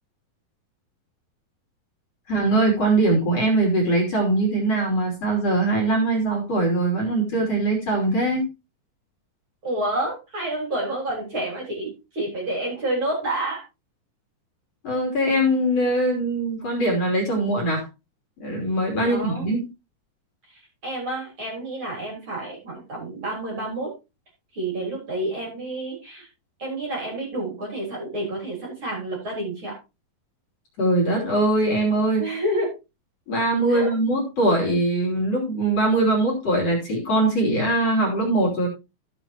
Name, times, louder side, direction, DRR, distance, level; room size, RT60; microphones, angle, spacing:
voice 1, 2.3-8.5 14.8-17.8 18.4-19.7 30.8-32.3 33.3-38.7, right 2 dB, 45° left, -1 dB, 3.9 m, -22 dB
voice 2, 9.6-13.6 19.0-19.5 20.5-23.9 24.5-26.3 26.6-29.7 32.2-32.7 33.7-33.9, right 1 dB, 35° right, -2 dB, 4.3 m, -29 dB
14.5 x 7.3 x 2.9 m, 0.26 s
omnidirectional pair, 4.4 m